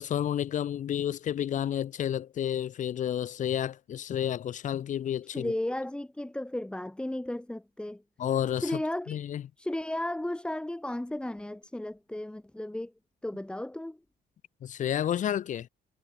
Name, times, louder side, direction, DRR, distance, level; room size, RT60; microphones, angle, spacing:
voice 1, 0.0-5.5 8.2-8.7 9.1-9.4 14.6-15.7, left 10 dB, 45° left, 0.9 m, -30 dB
voice 2, 5.2-8.0 8.5-9.2 9.6-12.9 13.2-14.0, left 1 dB, 5° left, 1.8 m, -34 dB
cardioid pair, 110°, 17 cm